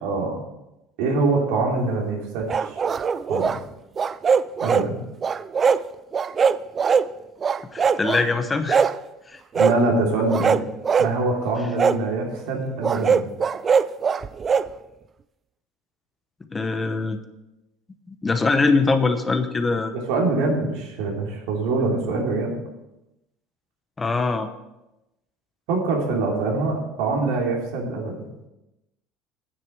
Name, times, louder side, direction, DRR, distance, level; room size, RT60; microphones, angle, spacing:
voice 1, 0.0-0.4 1.0-2.7 3.3-3.5 4.6-5.0 9.5-10.6 11.0-13.3 19.9-22.5 25.7-28.2, right 3 dB, 80° right, 0 dB, 3.0 m, -24 dB
sound 1, 2.5-3.6 4.0-4.9 5.2-5.8 6.1-7.1 7.4-8.2 8.7-9.0 9.5-9.8 10.3-11.1 11.8-12.0 12.8-14.7, right 6 dB, 30° right, 0.4 m, -21 dB
voice 2, 7.7-8.9 9.3-9.4 16.5-17.2 18.1-19.9 24.0-24.5, left 3 dB, 15° left, 9 dB, 0.8 m, -22 dB
9.3 x 7.7 x 6.2 m, 0.95 s
cardioid pair, 125°, 0 cm